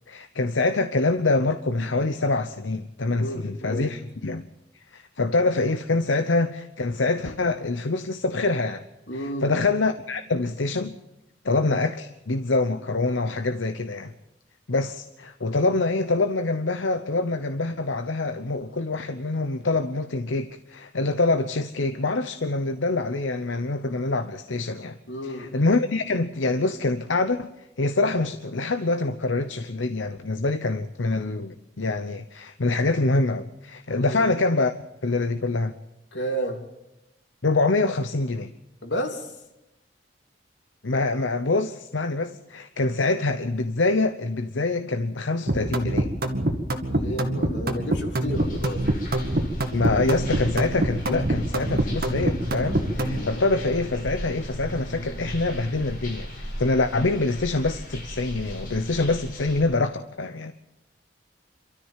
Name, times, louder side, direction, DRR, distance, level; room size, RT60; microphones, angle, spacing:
voice 1, 0.1-4.5 4.9-8.8 9.1-10.9 11.4-14.1 14.7-25.0 25.2-27.5 27.8-34.7 35.0-35.7 37.4-38.5 40.8-46.1 49.7-60.5, left 3 dB, 90° left, 0.9 m, -25 dB
voice 2, 3.1-3.9 9.1-9.5 25.1-25.5 34.0-34.2 36.1-36.6 38.8-39.3 46.9-48.9 52.7-53.4, equal, 75° left, 3.2 m, -32 dB
sound 1, 45.5-53.2, right 1 dB, 50° right, 2.1 m, -25 dB
sound 2, 48.3-59.6, equal, 45° left, 7.0 m, -35 dB
28.0 x 13.5 x 7.5 m
head